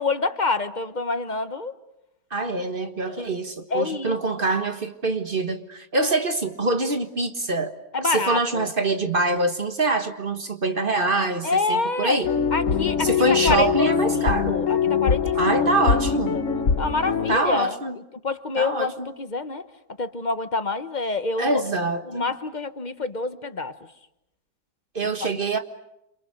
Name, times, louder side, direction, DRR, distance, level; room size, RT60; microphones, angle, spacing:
voice 1, 0.0-1.7 3.1-3.2 3.7-4.2 7.9-8.7 11.4-12.2 12.5-13.1 13.4-15.9 16.3-16.4 16.8-17.8 18.2-19.7 20.0-21.6 22.1-23.7 25.0-25.1, left 3 dB, 30° left, 10 dB, 1.0 m, -27 dB
voice 2, 2.3-7.7 8.0-12.3 13.0-14.6 15.3-16.4 17.3-18.0 18.6-19.1 21.4-22.3 24.9-25.6, right 2 dB, 30° right, 7 dB, 1.5 m, -24 dB
sound 1, 12.2-17.4, left 6 dB, 50° left, 1.5 m, -23 dB
28.5 x 28.0 x 6.6 m, 0.85 s
omnidirectional pair, 1.9 m